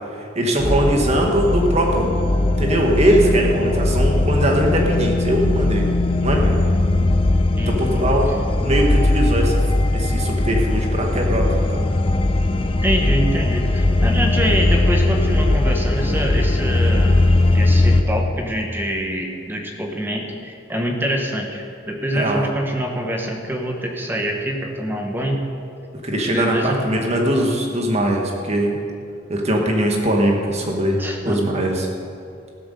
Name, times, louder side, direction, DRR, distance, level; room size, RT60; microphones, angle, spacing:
voice 1, 0.0-2.2 2.5-5.9 6.2-6.6 7.7-8.3 8.6-9.6 9.9-11.9 22.1-22.4 26.0-28.8 29.3-31.9, right 1 dB, 35° right, 0 dB, 1.7 m, -21 dB
sound 1, 0.6-18.0, left 2 dB, 30° left, 0.7 m, -19 dB
voice 2, 12.8-17.2 17.5-25.4 26.3-26.8 31.0-31.6, equal, 10° right, 2 dB, 1.3 m, -25 dB
15.5 x 7.9 x 6.8 m, 2.5 s
head